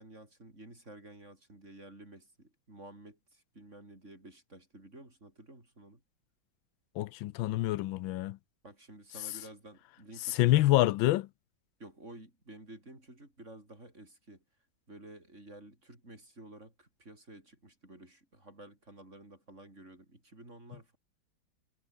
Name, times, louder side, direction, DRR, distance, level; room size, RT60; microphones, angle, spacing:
voice 1, 0.0-6.0 8.6-10.7 11.8-14.4 14.9-21.0, right 1 dB, 35° right, 7.4 m, -52 dB
voice 2, 7.0-8.4 10.4-11.3, left 16 dB, 90° left, 1.4 m, -26 dB
omnidirectional pair, 2.1 m